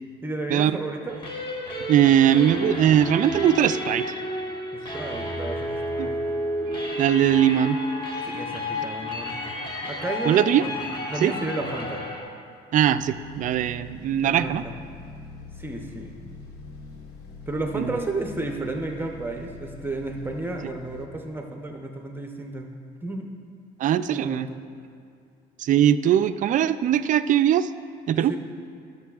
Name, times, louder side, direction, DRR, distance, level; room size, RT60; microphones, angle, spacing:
voice 1, 0.2-1.2 4.7-6.2 8.2-9.4 9.9-10.8 11.1-12.0 14.2-14.7 15.5-16.2 17.5-22.7 23.0-23.3 24.1-24.6 28.1-28.4, right 2 dB, 10° right, 2 dB, 0.7 m, -32 dB
sound 1, 1.1-12.2, left 1 dB, 30° left, 1.3 m, -31 dB
voice 2, 1.9-4.1 6.0-6.1 7.0-7.8 10.3-10.6 11.2-11.3 12.7-14.6 17.7-18.0 23.8-24.5 25.6-27.7 28.1-28.3, right 10 dB, 50° right, 12 dB, 0.4 m, -20 dB
sound 2, 12.8-21.1, left 3 dB, 85° left, 0.9 m, -43 dB
19.5 x 6.8 x 2.4 m, 2.3 s
cardioid pair, 110°, 17 cm